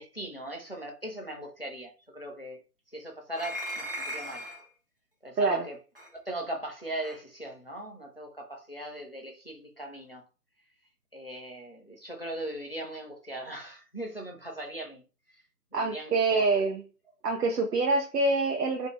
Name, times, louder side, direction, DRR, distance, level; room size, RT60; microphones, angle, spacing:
voice 1, 0.0-2.6 2.9-4.5 5.2-5.8 6.1-10.2 11.1-15.0 15.7-16.4, right 1 dB, 40° left, 0.4 m, -39 dB
sound 1, 3.3-4.7 6.0-6.1 7.0-7.2, equal, 40° right, 0.5 m, -37 dB
voice 2, 5.4-5.7 15.7-16.8 17.2-18.9, right 3 dB, 75° right, 0.7 m, -26 dB
2.5 x 2.0 x 2.9 m
figure-of-eight pair, 150°, 48 cm